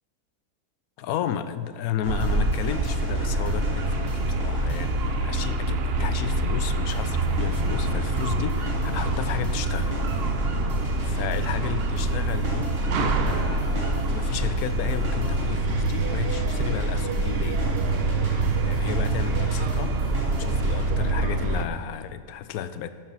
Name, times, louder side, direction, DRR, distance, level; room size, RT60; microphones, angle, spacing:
voice 1, 1.0-10.0 10.4-10.6 11.0-17.7 18.6-22.9, left 10 dB, 70° left, 12 dB, 1.0 m, -33 dB
sound 1, 2.0-5.7 6.9-20.9, equal, 35° right, 3.0 m, -39 dB
sound 2, 2.0-21.6, right 2 dB, 55° right, 0.7 m, -25 dB
13.0 x 12.5 x 4.0 m, 2.1 s
omnidirectional pair, 1.7 m